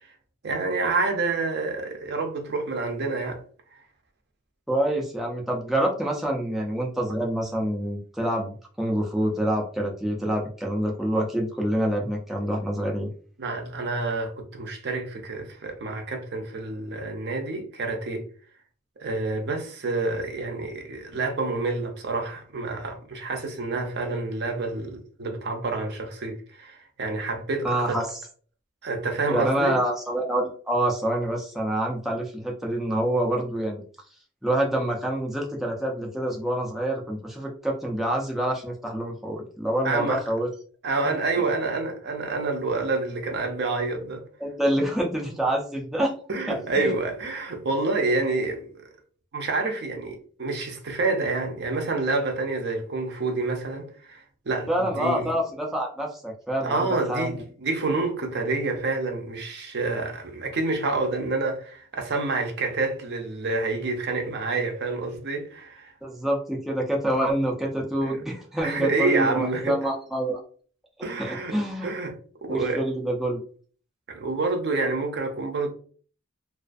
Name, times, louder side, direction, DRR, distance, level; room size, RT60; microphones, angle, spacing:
voice 1, 0.4-3.4 3.7-3.8 13.4-18.3 19.0-28.1 28.8-29.8 39.8-40.2 40.8-44.2 46.3-48.7 49.3-55.3 56.6-65.9 68.0-68.2 68.6-69.8 71.0-71.6 71.8-72.8 74.1-75.7, right 3 dB, 55° right, 0.5 m, -28 dB
voice 2, 4.7-13.1 27.6-28.2 29.3-33.8 34.4-40.5 44.4-46.1 46.5-46.9 54.7-57.3 66.0-70.4 71.2-71.9 72.5-73.4, right 1 dB, ahead, 0.4 m, -27 dB
2.4 x 2.3 x 2.4 m
head